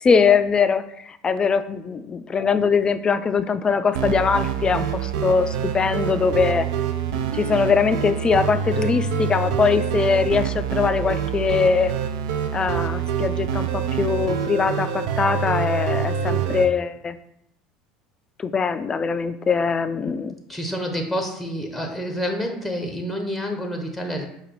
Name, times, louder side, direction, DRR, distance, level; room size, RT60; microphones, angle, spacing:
voice 1, 0.0-6.7 7.3-11.9 12.5-17.2 18.4-20.4, left 5 dB, 30° left, 12 dB, 0.3 m, -22 dB
sound 1, 3.9-16.7, right 8 dB, 75° right, 0.4 m, -26 dB
voice 2, 20.5-24.3, equal, 5° right, 3 dB, 0.8 m, -28 dB
5.0 x 2.3 x 4.2 m, 0.77 s
hypercardioid pair, 80°, 3 cm